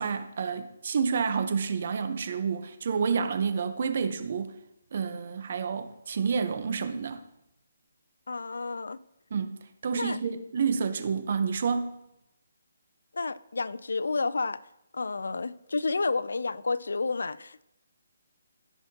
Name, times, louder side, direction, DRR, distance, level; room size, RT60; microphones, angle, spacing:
voice 1, 0.0-4.5 4.9-7.2 9.3-12.0, right 6 dB, 50° right, 0.9 m, -29 dB
voice 2, 8.3-9.0 10.0-10.2 13.1-14.6 14.9-17.6, left 3 dB, 85° left, 0.4 m, -30 dB
16.0 x 5.7 x 2.9 m
hypercardioid pair, 165°, 0 cm